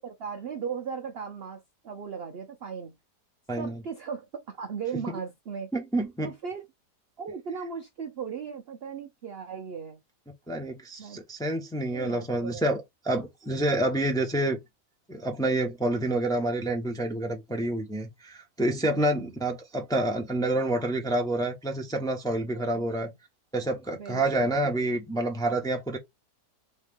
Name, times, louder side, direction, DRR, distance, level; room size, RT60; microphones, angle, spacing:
voice 1, 0.0-3.0 3.6-5.7 6.2-6.6 7.2-10.0 11.0-11.2 11.9-12.7 18.8-19.3 22.5-23.1 24.0-24.6, right 6 dB, 75° right, 0.5 m, -37 dB
voice 2, 5.7-6.3 10.5-14.6 15.1-23.1 23.5-26.0, right 1 dB, 5° left, 0.5 m, -28 dB
3.7 x 3.2 x 3.5 m
omnidirectional pair, 1.9 m